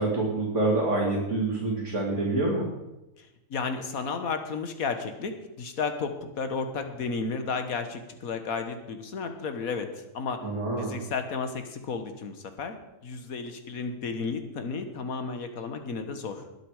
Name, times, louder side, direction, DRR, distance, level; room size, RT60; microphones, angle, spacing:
voice 1, 0.0-2.7 10.4-11.0, right 2 dB, 55° right, -4 dB, 2.9 m, -27 dB
voice 2, 3.2-5.3 5.6-9.9 10.1-10.4 10.8-12.8 13.0-16.4, left 5 dB, 75° left, 7 dB, 1.8 m, -33 dB
20.5 x 7.7 x 4.9 m, 0.97 s
omnidirectional pair, 1.5 m